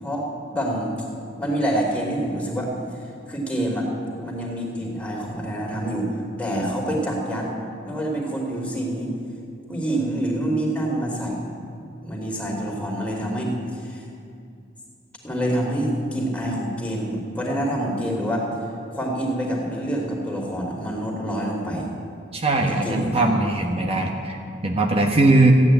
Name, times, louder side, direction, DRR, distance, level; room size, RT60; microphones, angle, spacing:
voice 1, 0.0-0.9 1.4-2.7 3.3-3.9 4.2-6.1 6.4-7.5 7.8-9.1 9.7-11.5 12.0-14.0 15.2-18.5 18.9-21.9 22.6-23.5 23.9-24.0, right 1 dB, 5° left, -2 dB, 3.0 m, -26 dB
voice 2, 22.3-25.5, right 2 dB, 30° right, 2 dB, 1.2 m, -20 dB
14.5 x 9.7 x 9.5 m, 2.4 s
head